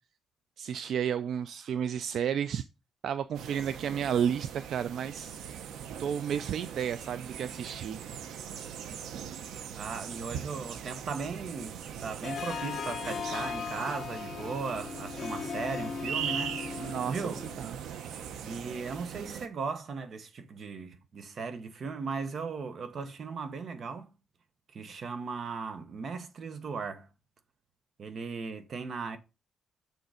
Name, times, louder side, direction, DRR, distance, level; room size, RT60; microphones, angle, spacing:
voice 1, 0.6-2.7 3.0-5.6 6.0-8.0 16.8-17.7, right 8 dB, 65° right, 0.4 m, -32 dB
sound 1, 3.3-19.5, right 8 dB, 85° right, 0.9 m, -41 dB
voice 2, 9.8-17.4 18.4-24.1 24.7-27.1 28.0-29.2, right 5 dB, 45° right, 1.2 m, -37 dB
Harp, 12.2-17.7, left 6 dB, 45° left, 1.1 m, -38 dB
7.0 x 6.5 x 5.0 m
cardioid pair, 130°, 0 cm